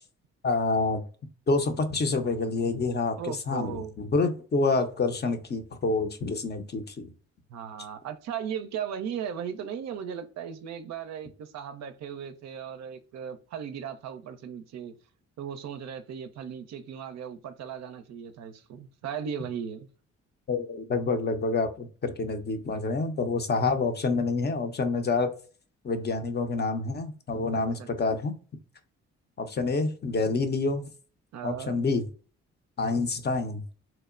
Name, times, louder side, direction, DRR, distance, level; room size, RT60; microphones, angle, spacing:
voice 1, 0.4-1.0 1.5-7.1 20.5-25.3 25.8-28.3 29.4-30.8 31.4-32.0 32.8-33.6, left 3 dB, 35° left, 7 dB, 0.5 m, -27 dB
voice 2, 3.2-4.0 7.5-14.9 15.4-19.9 27.5-28.2 31.3-31.8, right 8 dB, 65° right, 8 dB, 0.5 m, -37 dB
2.9 x 2.1 x 2.3 m, 0.39 s
supercardioid pair, 60°, 29 cm